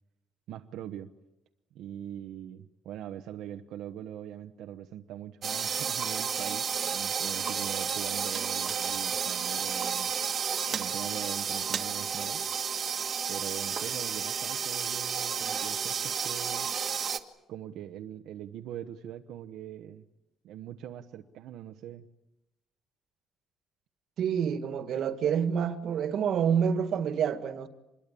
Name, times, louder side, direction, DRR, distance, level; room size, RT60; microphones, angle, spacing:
voice 1, 0.5-1.1 1.7-10.1 10.7-12.4 13.3-16.7 17.5-20.1 20.4-22.1, right 10 dB, 75° right, 1.1 m, -42 dB
sound 1, 5.4-17.2, right 7 dB, 35° right, 1.5 m, -31 dB
voice 2, 24.2-27.7, right 7 dB, 55° right, 1.8 m, -28 dB
26.0 x 21.5 x 8.5 m
cardioid pair, 160°, 0 cm